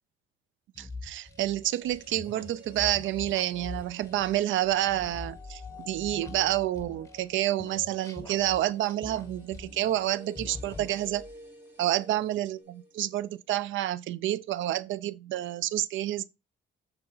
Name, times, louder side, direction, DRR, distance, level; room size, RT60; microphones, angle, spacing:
sound 1, 0.7-7.3 7.6-10.1 10.3-11.4, left 3 dB, 15° left, 1.4 m, -44 dB
voice 1, 0.8-11.2 11.8-16.2, right 13 dB, 75° right, 0.4 m, -29 dB
sound 2, 1.3-13.4 13.6-13.7, right 1 dB, 10° right, 2.9 m, -51 dB
7.8 x 4.1 x 3.9 m
cardioid pair, 90°, 20 cm